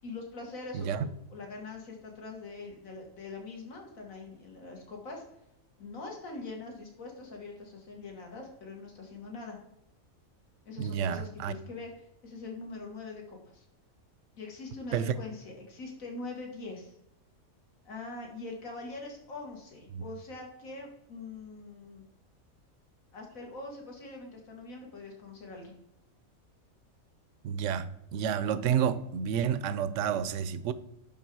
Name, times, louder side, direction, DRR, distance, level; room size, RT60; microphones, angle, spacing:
voice 1, 0.0-5.2 5.8-9.6 10.7-13.6 14.4-16.9 17.9-22.0 23.1-25.7, left 3 dB, 70° left, 2.1 m, -43 dB
voice 2, 0.7-1.1 10.8-11.5 14.9-15.1 19.9-20.0 27.4-30.7, right 8 dB, 70° right, 0.9 m, -30 dB
10.5 x 3.6 x 4.6 m
omnidirectional pair, 1.5 m